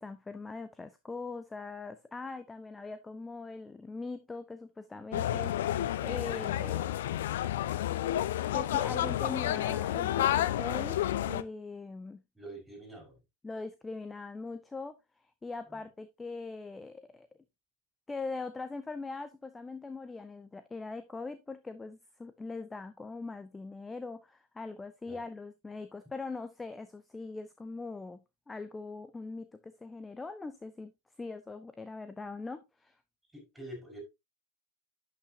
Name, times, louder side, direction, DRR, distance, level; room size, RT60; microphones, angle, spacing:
voice 1, 0.0-6.9 8.5-11.0 11.3-12.2 13.4-15.0 15.2-17.3 18.1-30.9 31.2-33.0, left 3 dB, 10° left, 0.6 m, -41 dB
sound 1, 5.1-11.4, left 12 dB, 55° left, 0.5 m, -30 dB
voice 2, 12.3-13.2 15.7-15.8 25.1-25.2 33.3-34.0, right 1 dB, 5° right, 5.4 m, -46 dB
11.5 x 6.1 x 2.8 m
figure-of-eight pair, 90°, 0 cm